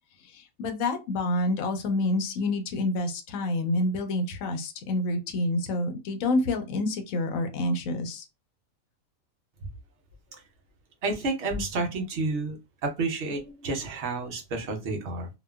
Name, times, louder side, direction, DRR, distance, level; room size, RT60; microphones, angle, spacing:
voice 1, 0.2-8.3, left 2 dB, 80° left, 5 dB, 1.0 m, -28 dB
voice 2, 11.0-12.6 12.8-15.3, right 3 dB, 60° right, 3 dB, 1.0 m, -30 dB
2.8 x 2.4 x 2.2 m, 0.25 s
omnidirectional pair, 1.5 m